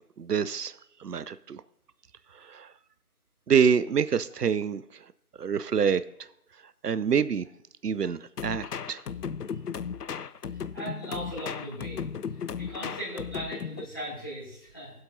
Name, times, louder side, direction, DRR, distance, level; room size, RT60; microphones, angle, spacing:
voice 1, 0.2-1.6 2.3-2.7 3.5-5.1 5.4-6.3 6.8-7.4 7.8-9.0, right 7 dB, 85° right, 16 dB, 0.6 m, -27 dB
sound 1, 8.4-13.9, left 7 dB, 85° left, 0.5 m, -36 dB
voice 2, 10.7-12.0 12.6-14.9, equal, 15° left, -10 dB, 2.3 m, -38 dB
20.5 x 7.9 x 2.7 m, 0.78 s
figure-of-eight pair, 170°, 46 cm